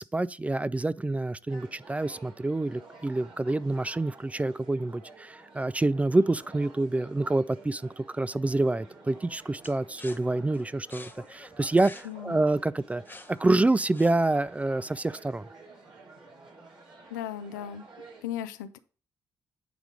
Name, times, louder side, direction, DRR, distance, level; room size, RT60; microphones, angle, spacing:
voice 1, 0.0-13.0 13.3-15.4, right 2 dB, 15° right, 0.3 m, -27 dB
sound 1, 1.5-18.2, right 3 dB, 55° right, 2.7 m, -51 dB
sound 2, 9.6-14.5, left 2 dB, 20° left, 0.9 m, -49 dB
voice 2, 12.0-12.4 17.1-17.9 18.2-18.8, left 10 dB, 85° left, 0.4 m, -36 dB
9.2 x 3.7 x 4.9 m
hypercardioid pair, 40°, 10 cm